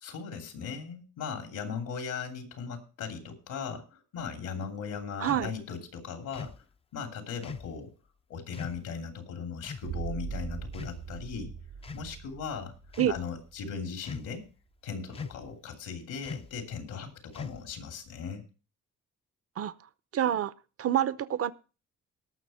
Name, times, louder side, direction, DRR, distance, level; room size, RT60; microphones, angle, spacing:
voice 1, 0.0-6.5 6.9-7.9 8.3-11.5 11.9-12.7 13.1-14.5 14.8-18.4, left 6 dB, 80° left, 5 dB, 2.9 m, -38 dB
sound 1, 5.2-5.5 6.3-6.6 7.4-7.7 8.5-8.8 9.6-9.9 10.7-11.3 11.8-12.1 12.8-13.2 14.0-14.5 15.1-15.5 16.2-16.6 17.3-17.8, left 5 dB, 20° left, 0.5 m, -41 dB
voice 2, 5.2-5.5 13.0-13.1 19.6-19.7 20.1-20.5 20.8-21.5, right 11 dB, 50° right, 17 dB, 0.7 m, -27 dB
sound 2, 9.8-13.8, right 6 dB, 90° right, 6.0 m, -40 dB
18.5 x 6.4 x 4.3 m, 0.34 s
cardioid pair, 90°, 30 cm